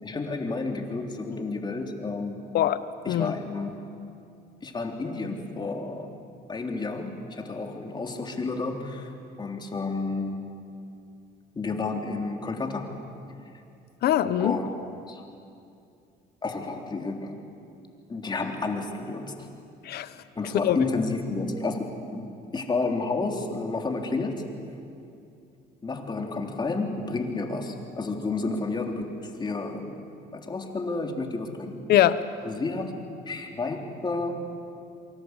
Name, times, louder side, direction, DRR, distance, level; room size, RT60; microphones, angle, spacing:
voice 1, 0.0-2.4 3.0-3.8 4.6-6.1 6.5-9.1 9.4-10.4 11.5-12.9 14.4-14.7 15.1-15.2 16.4-17.4 18.1-19.5 20.3-21.8 22.1-24.4 25.8-30.0 30.3-31.8 32.4-33.0 33.2-33.8 34.0-34.5, left 3 dB, 25° left, 2 dB, 3.6 m, -31 dB
voice 2, 2.5-3.3 14.0-14.6 19.8-20.1 20.6-20.8 31.9-32.2, left 12 dB, 70° left, 13 dB, 1.2 m, -22 dB
28.0 x 24.5 x 8.3 m, 2.6 s
cardioid pair, 110°, 17 cm